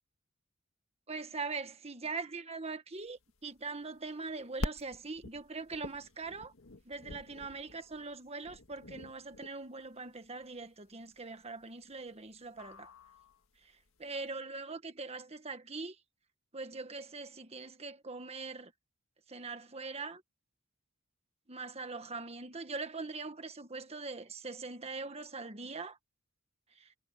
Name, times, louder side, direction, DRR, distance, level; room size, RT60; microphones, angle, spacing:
voice 1, 1.1-6.5 6.8-12.9 14.0-16.0 16.5-18.7 19.3-20.2 21.5-26.0 26.8-26.9, right 3 dB, 30° right, 1.5 m, -42 dB
sound 1, 3.1-14.2, left 1 dB, 75° left, 1.7 m, -45 dB
head